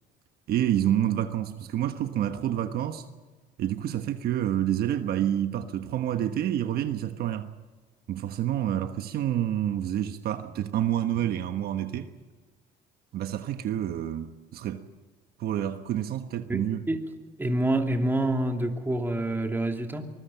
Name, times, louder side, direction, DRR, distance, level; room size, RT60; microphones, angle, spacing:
voice 1, 0.5-3.1 3.6-7.5 8.1-12.1 13.1-14.8 15.4-16.8, right 11 dB, 65° right, 1.3 m, -28 dB
voice 2, 16.5-17.0 17.4-20.0, right 1 dB, 10° right, 2.8 m, -27 dB
24.0 x 21.0 x 5.8 m
cardioid pair, 110°, 17 cm